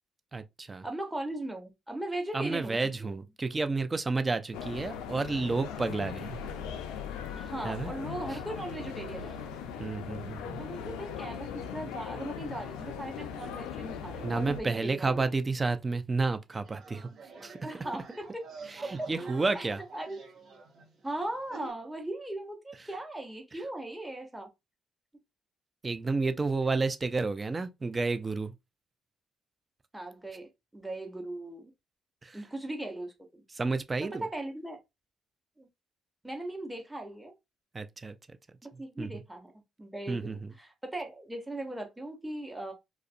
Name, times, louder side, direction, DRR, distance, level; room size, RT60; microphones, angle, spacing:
voice 1, 0.3-0.9 2.3-6.4 7.6-7.9 8.3-8.4 9.8-10.6 14.2-17.1 17.4-17.6 18.7-19.8 23.5-23.6 25.8-28.5 32.2-32.4 33.5-34.3 37.7-38.2 38.7-39.2 40.1-40.5, right 3 dB, 30° right, 0.4 m, -31 dB
voice 2, 0.8-3.1 7.3-9.3 10.6-15.2 17.6-18.4 19.0-19.1 19.5-19.7 19.9-20.2 21.0-24.5 29.9-31.7 32.3-33.4 34.2-34.8 35.6-35.7 36.2-37.3 38.6-42.7, right 1 dB, 10° right, 0.9 m, -38 dB
sound 1, 4.5-14.6, left 7 dB, 80° left, 0.3 m, -39 dB
sound 2, 16.6-21.7, right 3 dB, 60° right, 0.8 m, -47 dB
2.4 x 2.0 x 2.5 m
hypercardioid pair, 50°, 0 cm